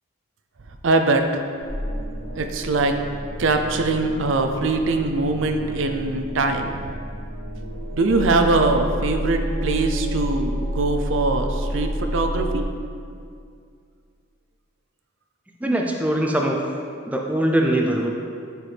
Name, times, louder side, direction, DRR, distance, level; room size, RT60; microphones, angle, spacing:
voice 1, 0.8-1.4 2.3-3.0 3.4-6.9 7.9-12.6, right 3 dB, 65° right, 5 dB, 0.6 m, -22 dB
sound 1, 1.6-12.6, equal, 50° left, 1.7 m, -30 dB
voice 2, 15.6-16.6 17.1-18.1, right 1 dB, 5° right, 0 dB, 0.5 m, -21 dB
11.0 x 4.6 x 3.4 m, 2.3 s
head